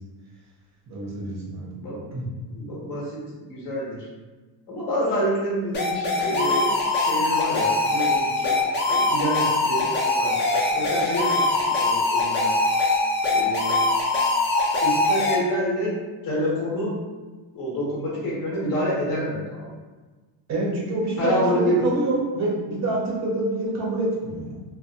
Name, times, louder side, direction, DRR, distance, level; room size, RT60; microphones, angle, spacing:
voice 1, 0.9-1.8 2.1-2.3 20.5-24.8, right 2 dB, 35° right, -3 dB, 0.6 m, -27 dB
voice 2, 1.7-2.1 2.4-4.1 4.7-8.6 8.9-10.4 10.7-12.5 13.3-13.8 14.8-15.9 16.2-17.0 17.5-19.7 21.2-21.8, equal, 45° left, -5 dB, 1.1 m, -28 dB
sound 1, 5.7-15.4, left 2 dB, 25° left, 0.3 m, -22 dB
2.5 x 2.1 x 2.7 m, 1.3 s
cardioid pair, 145°, 47 cm